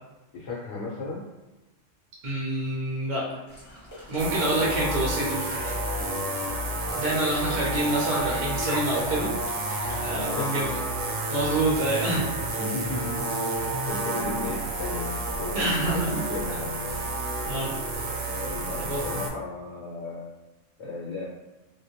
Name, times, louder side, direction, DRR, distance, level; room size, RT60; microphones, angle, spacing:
voice 1, 0.3-1.2 4.4-4.7 6.0-6.2 10.2-10.5 12.1-12.3 12.6-16.7 18.3-20.3 20.8-21.2, left 3 dB, 65° left, -5 dB, 0.8 m, -35 dB
voice 2, 2.2-3.2 4.1-5.4 6.9-9.3 10.0-10.8 11.3-12.2 15.5-16.1 17.5-17.7 18.9-19.0, right 1 dB, 50° right, -4 dB, 0.6 m, -27 dB
sound 1, 3.5-10.2, equal, 15° left, 0.7 m, -42 dB
sound 2, 4.2-19.3, right 2 dB, 90° right, 0.9 m, -30 dB
2.2 x 2.2 x 2.6 m, 1.1 s
omnidirectional pair, 1.3 m